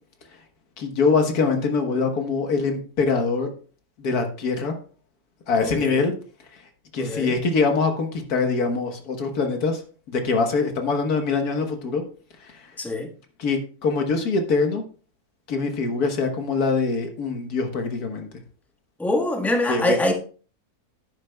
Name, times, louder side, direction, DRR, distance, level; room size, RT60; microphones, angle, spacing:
voice 1, 0.8-3.5 4.0-4.7 5.5-6.1 6.9-9.8 10.1-12.0 12.4-12.7 13.4-14.8 15.5-18.3 19.7-20.0, left 4 dB, 90° left, 1.8 m, -23 dB
voice 2, 5.6-6.1 7.0-7.3 12.8-13.1 19.0-20.1, left 1 dB, ahead, 1.2 m, -24 dB
10.5 x 9.4 x 2.3 m
omnidirectional pair, 1.6 m